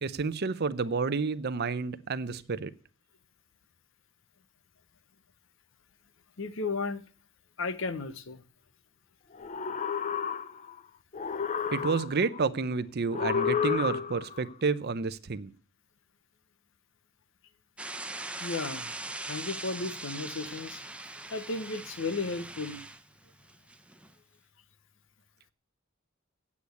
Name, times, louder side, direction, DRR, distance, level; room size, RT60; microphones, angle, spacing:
voice 1, 0.0-2.7 11.7-15.5, right 4 dB, 50° right, 0.6 m, -30 dB
voice 2, 6.4-7.1 7.6-8.4 18.4-19.0 19.3-20.8 21.3-22.8, left 3 dB, 65° left, 0.8 m, -34 dB
sound 1, 9.4-10.8 11.1-12.4 13.1-14.4, left 6 dB, 35° left, 0.5 m, -31 dB
sound 2, 17.8-24.1, right 2 dB, 5° right, 0.6 m, -41 dB
8.5 x 8.2 x 8.2 m
head